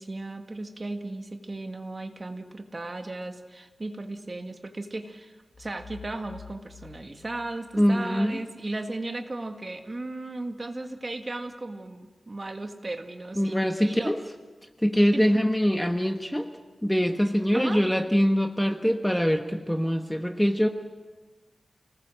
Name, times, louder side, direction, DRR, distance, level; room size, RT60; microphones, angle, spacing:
voice 1, 0.0-14.2 15.1-15.3 17.5-17.8, right 2 dB, 35° right, 5 dB, 1.8 m, -36 dB
sound 1, 5.5-8.4, left 6 dB, 45° left, 7.9 m, -49 dB
voice 2, 7.8-8.4 13.4-14.2 14.8-16.5 16.8-20.7, equal, 5° left, 6 dB, 1.2 m, -23 dB
29.5 x 19.5 x 6.4 m, 1.3 s
wide cardioid pair, 115°, 0 cm